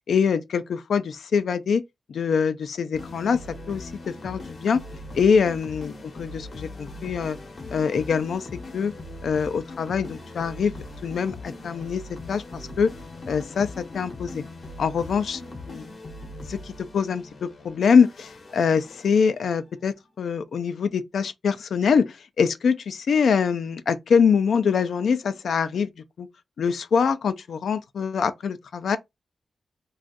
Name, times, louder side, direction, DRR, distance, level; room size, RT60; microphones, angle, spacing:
voice 1, 0.1-1.8 2.1-4.8 5.1-5.9 6.2-7.4 7.7-8.5 8.7-8.9 9.2-10.7 11.0-12.0 12.3-12.9 13.3-14.4 14.8-15.4 15.7-15.8 16.5-25.9 26.2-26.3 26.6-29.0, left 6 dB, 90° left, 0.3 m, -24 dB
sound 1, 2.9-19.7, left 2 dB, 55° left, 0.8 m, -40 dB
2.5 x 2.3 x 3.9 m
wide cardioid pair, 155°, 0 cm